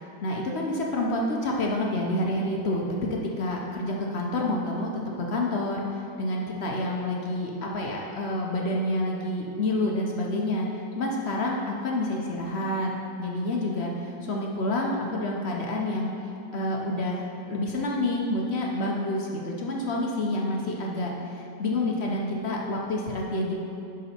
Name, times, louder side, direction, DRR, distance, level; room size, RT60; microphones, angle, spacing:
voice 1, 0.2-4.9 5.2-12.9 13.2-16.1 16.5-23.6, left 1 dB, 60° left, -1 dB, 0.7 m, -28 dB
10.5 x 4.0 x 4.3 m, 2.7 s
omnidirectional pair, 1.9 m